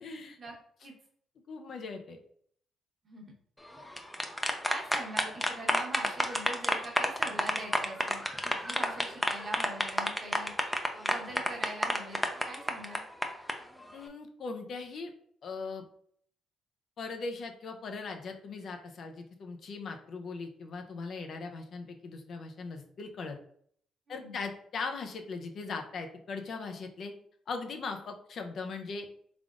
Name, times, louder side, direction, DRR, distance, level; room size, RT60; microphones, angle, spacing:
voice 1, 0.0-0.4 1.5-2.2 13.9-15.1 15.4-15.8 17.0-23.4 24.1-27.1 27.5-29.1, left 4 dB, 60° left, 4 dB, 0.5 m, -39 dB
sound 1, 3.8-13.5, left 1 dB, 5° left, 0.5 m, -30 dB
voice 2, 4.7-13.0 24.1-24.4, right 1 dB, 40° right, 0 dB, 1.0 m, -43 dB
3.5 x 3.4 x 2.5 m, 0.62 s
cardioid pair, 90°, 0 cm